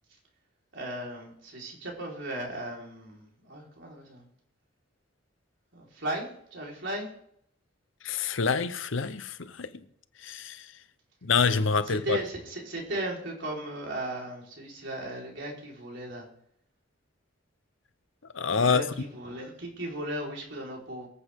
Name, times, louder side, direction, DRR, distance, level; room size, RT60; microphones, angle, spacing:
voice 1, 0.7-4.2 5.7-7.1 11.9-16.3 18.6-21.1, right 1 dB, 65° right, 4.4 m, -36 dB
voice 2, 8.0-9.7 10.2-10.6 11.2-12.2 18.3-18.8, left 5 dB, 75° left, 0.8 m, -26 dB
23.5 x 8.4 x 3.7 m
head